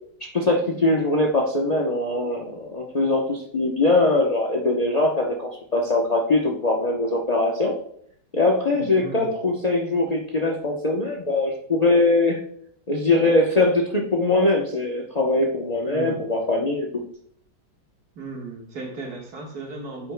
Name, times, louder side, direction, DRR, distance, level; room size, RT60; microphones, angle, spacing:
voice 1, 0.2-7.7 8.3-12.4 12.9-16.9, left 2 dB, 70° left, 0 dB, 0.3 m, -22 dB
voice 2, 8.7-9.3 15.9-16.5 18.2-20.1, right 3 dB, 55° right, 0 dB, 2.0 m, -36 dB
9.5 x 8.0 x 2.2 m, 0.64 s
omnidirectional pair, 2.1 m